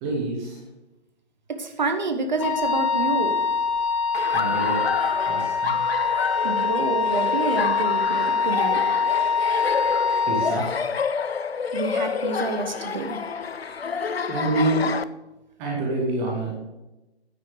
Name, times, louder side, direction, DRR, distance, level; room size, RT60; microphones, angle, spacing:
voice 1, 0.0-0.6 4.3-4.8 5.3-5.8 10.3-10.7 14.3-14.9 15.6-16.6, right 2 dB, 10° right, -2 dB, 0.9 m, -26 dB
voice 2, 1.5-3.4 6.4-9.0 11.7-13.2, right 3 dB, 40° right, 6 dB, 1.3 m, -28 dB
Wind instrument woodwind instrument, 2.4-10.6, left 5 dB, 30° left, 1.1 m, -24 dB
Laughter, 4.1-15.0, left 5 dB, 65° left, 0.6 m, -29 dB
9.6 x 6.2 x 6.5 m, 1.0 s
figure-of-eight pair, 140°, 33 cm